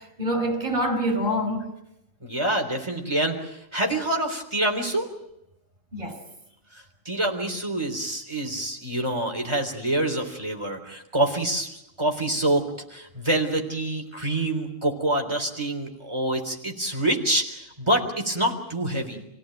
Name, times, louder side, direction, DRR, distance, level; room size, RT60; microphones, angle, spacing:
voice 1, 0.0-1.7 5.9-6.3, equal, 40° right, 5.2 m, -26 dB
voice 2, 2.2-5.1 6.7-19.3, right 1 dB, 20° right, 3.9 m, -26 dB
28.0 x 17.0 x 9.2 m
omnidirectional pair, 1.3 m